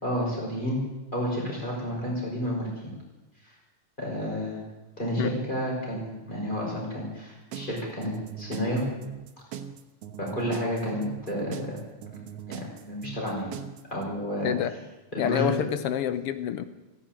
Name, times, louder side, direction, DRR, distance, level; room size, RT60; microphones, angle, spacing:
voice 1, 0.0-0.8 1.1-2.7 4.0-4.6 5.0-8.8 10.2-11.8 12.5-13.5 13.9-14.5 15.1-15.5, equal, 15° left, -3 dB, 5.6 m, -30 dB
sound 1, 7.5-14.0, right 8 dB, 65° right, 1.9 m, -40 dB
voice 2, 14.4-14.8 15.2-16.6, left 10 dB, 70° left, 12 dB, 1.4 m, -27 dB
15.0 x 11.0 x 8.9 m, 1.1 s
omnidirectional pair, 3.3 m